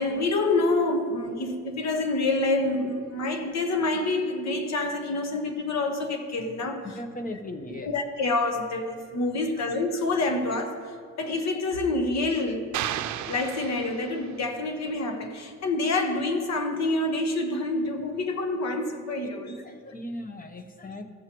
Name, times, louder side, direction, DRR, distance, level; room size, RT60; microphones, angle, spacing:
voice 1, 0.0-6.9 7.8-12.7 13.3-19.6, left 2 dB, 60° left, 5 dB, 1.3 m, -27 dB
voice 2, 6.8-7.9 9.6-9.7 19.6-21.0, left 1 dB, 30° left, 6 dB, 0.9 m, -38 dB
sound 1, 12.7-14.5, right 11 dB, 70° right, 0.5 m, -33 dB
15.5 x 7.5 x 3.0 m, 2.1 s
cardioid pair, 90°, 30 cm